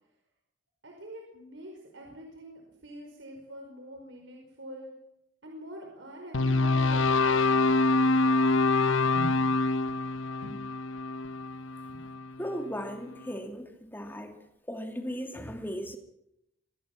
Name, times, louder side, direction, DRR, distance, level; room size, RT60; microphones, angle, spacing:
voice 1, 0.8-4.9 5.4-7.5 9.2-9.6 10.4-10.6 11.9-12.0, right 1 dB, 70° right, 1 dB, 5.1 m, -44 dB
sound 1, 6.3-12.6, left 3 dB, 85° left, 1.2 m, -25 dB
voice 2, 12.4-14.4 14.7-16.0, equal, 10° left, 4 dB, 2.7 m, -37 dB
25.0 x 19.0 x 6.0 m, 0.81 s
head